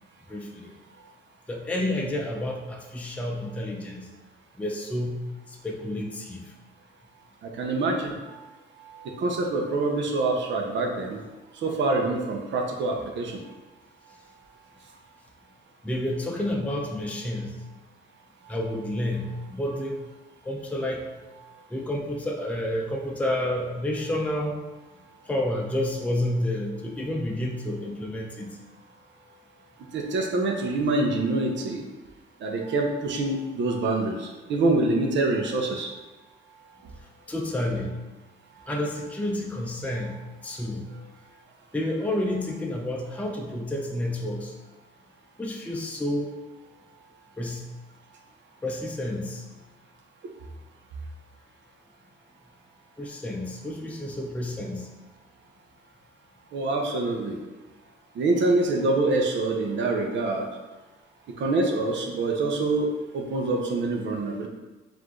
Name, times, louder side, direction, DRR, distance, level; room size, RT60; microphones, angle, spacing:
voice 1, 0.3-0.7 1.5-4.1 4.6-5.2 5.5-6.5 15.8-17.6 18.5-20.0 20.4-21.1 21.7-24.6 25.3-28.6 37.3-38.0 38.7-40.2 40.4-40.9 41.7-44.5 45.4-46.3 47.4-47.6 48.6-49.4 53.0-54.9, left 1 dB, 5° left, 0 dB, 0.5 m, -30 dB
voice 2, 7.4-8.4 9.0-11.2 11.6-13.4 29.9-31.8 32.4-35.9 56.5-57.4 58.2-60.5 61.4-62.9 63.1-64.5, right 2 dB, 65° right, 2 dB, 0.8 m, -25 dB
4.8 x 2.6 x 3.7 m, 1.2 s
cardioid pair, 90°, 20 cm